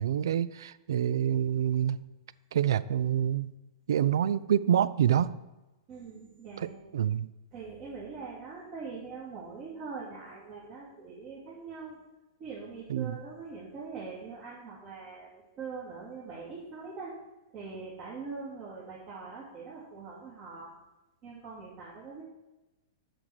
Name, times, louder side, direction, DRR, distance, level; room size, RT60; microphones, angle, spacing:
voice 1, 0.0-2.0 2.5-3.5 3.9-5.4 6.6-7.3 12.9-13.2, right 10 dB, 70° right, 0.3 m, -27 dB
voice 2, 5.9-6.8 7.5-12.0 12.4-15.3 15.6-17.1 17.5-20.7 21.2-22.2, right 4 dB, 45° right, 2.4 m, -42 dB
7.8 x 6.3 x 4.8 m
hypercardioid pair, 105°, 2 cm